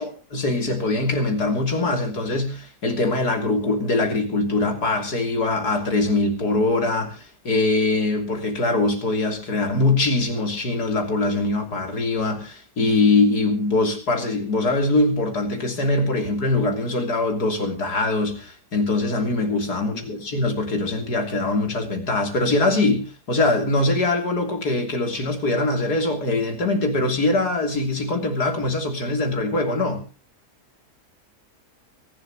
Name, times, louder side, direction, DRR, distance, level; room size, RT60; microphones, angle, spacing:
voice 1, 0.0-30.0, left 2 dB, 70° left, 4 dB, 3.7 m, -22 dB
23.5 x 11.5 x 3.0 m, 0.34 s
omnidirectional pair, 1.7 m